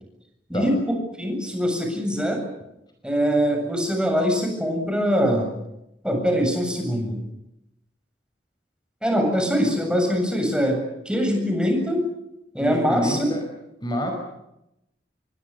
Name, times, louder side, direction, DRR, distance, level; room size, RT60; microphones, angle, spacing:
voice 1, 0.5-2.4 3.0-5.5 6.0-7.2 9.0-12.1 12.5-13.3, equal, 5° right, 3 dB, 7.5 m, -23 dB
voice 2, 12.6-13.4 13.8-14.1, equal, 25° left, 3 dB, 5.2 m, -27 dB
29.0 x 23.5 x 6.8 m, 0.85 s
head